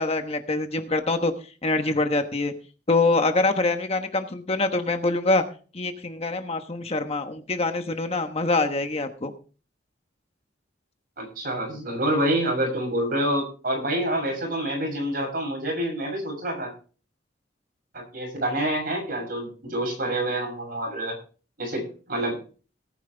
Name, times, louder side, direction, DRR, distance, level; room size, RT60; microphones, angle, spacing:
voice 1, 0.0-1.3 1.6-2.5 2.9-5.4 5.7-9.3, left 3 dB, 35° left, 7 dB, 1.2 m, -24 dB
voice 2, 11.2-16.7 17.9-21.2 21.6-22.4, right 1 dB, 50° right, 2 dB, 6.7 m, -27 dB
18.5 x 9.3 x 3.4 m, 0.38 s
head